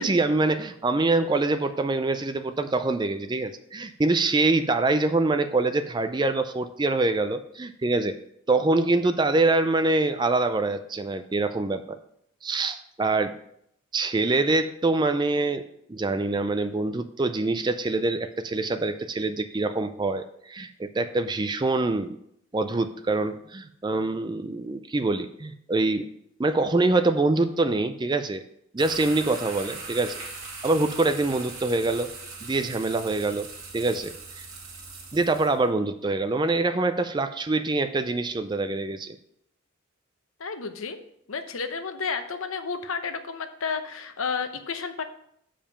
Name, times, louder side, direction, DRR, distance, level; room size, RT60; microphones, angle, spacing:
voice 1, 0.0-8.2 8.5-12.0 12.4-13.4 13.9-15.6 15.9-22.2 22.5-26.1 26.4-28.4 28.7-30.2 30.6-32.1 32.4-34.5 35.1-39.2, right 2 dB, 20° right, 9 dB, 0.4 m, -25 dB
sound 1, 28.8-35.6, right 3 dB, 75° right, 2.4 m, -40 dB
voice 2, 40.4-41.0 41.3-45.0, left 5 dB, 80° left, 8 dB, 0.8 m, -31 dB
7.1 x 5.1 x 5.7 m, 0.72 s
head